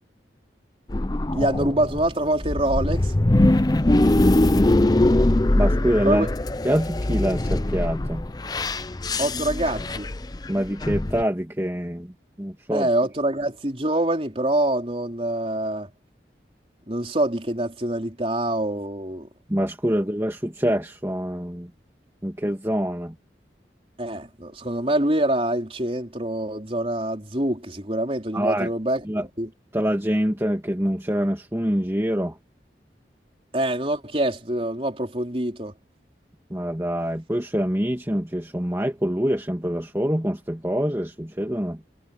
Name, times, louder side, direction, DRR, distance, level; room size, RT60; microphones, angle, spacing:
sound 1, 0.9-11.2, left 1 dB, 20° left, 0.6 m, -22 dB
voice 1, 1.3-3.1 6.0-6.3 9.2-10.1 12.7-15.9 16.9-19.3 19.9-20.0 24.0-29.0 29.4-29.5 33.5-35.7, right 1 dB, 35° right, 4.0 m, -25 dB
voice 2, 5.6-6.3 6.6-8.2 10.5-12.9 19.5-21.7 22.2-23.1 28.3-28.7 29.0-29.3 29.7-32.4 36.5-41.8, equal, 15° right, 2.1 m, -25 dB
head